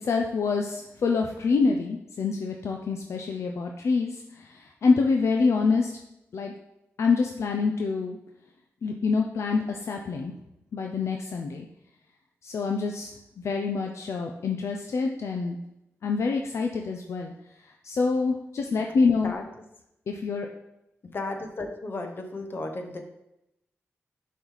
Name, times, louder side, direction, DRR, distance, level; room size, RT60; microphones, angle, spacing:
voice 1, 0.0-6.0 6.3-6.5 7.0-8.2 8.8-10.3 10.7-11.7 12.4-13.1 13.4-15.6 16.0-17.3 17.8-19.3 20.1-20.5, left 4 dB, 70° left, 2 dB, 0.5 m, -26 dB
voice 2, 21.0-23.1, left 2 dB, 45° left, 4 dB, 1.0 m, -34 dB
6.8 x 3.2 x 5.6 m, 0.84 s
wide cardioid pair, 90°, 5 cm